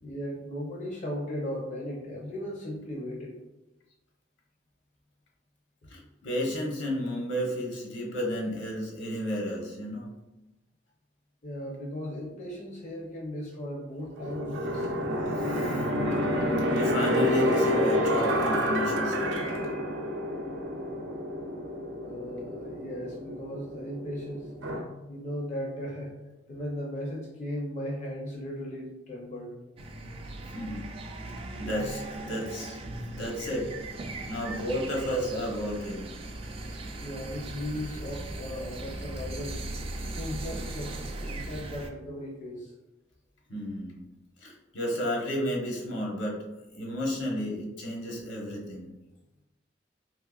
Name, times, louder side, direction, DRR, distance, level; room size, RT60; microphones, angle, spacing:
voice 1, 0.0-3.4 11.4-14.9 22.0-24.5 25.1-26.2 26.5-29.5 36.6-39.6 40.2-42.7, left 1 dB, 40° left, -2 dB, 0.5 m, -37 dB
voice 2, 5.9-10.1 15.5-16.4 16.7-19.5 30.5-30.8 31.6-32.8 33.1-33.7 34.3-36.1 43.5-44.0 44.4-46.4 46.7-48.9, equal, 80° left, -2 dB, 0.9 m, -32 dB
sound 1, 14.2-24.8, equal, 90° right, 0.5 m, -29 dB
sound 2, 29.8-41.9, right 2 dB, 30° right, 0.3 m, -38 dB
3.5 x 3.1 x 2.3 m, 1.0 s
head